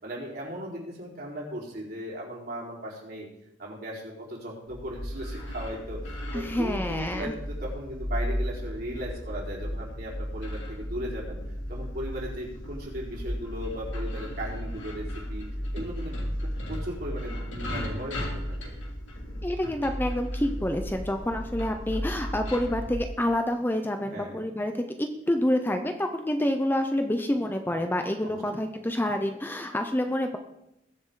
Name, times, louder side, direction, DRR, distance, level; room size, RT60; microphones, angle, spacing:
voice 1, 0.0-3.3 3.6-11.4 11.7-15.5 15.7-16.2 16.7-18.7 24.1-24.4 28.2-28.6, equal, 55° right, -3 dB, 4.4 m, -37 dB
sound 1, 4.7-23.0, equal, 90° left, 2.9 m, -34 dB
voice 2, 6.3-7.3 19.4-30.4, left 1 dB, 10° left, 5 dB, 0.7 m, -28 dB
21.0 x 7.7 x 3.9 m, 0.84 s
head